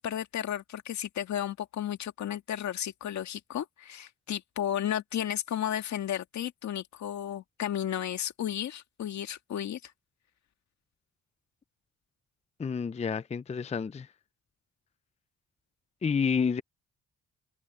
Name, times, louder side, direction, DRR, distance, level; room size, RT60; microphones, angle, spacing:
voice 1, 0.0-9.9, left 10 dB, 65° left, 2.0 m, -33 dB
voice 2, 12.6-14.1 16.0-16.6, left 6 dB, 20° left, 0.5 m, -29 dB
cardioid pair, 90°, 30 cm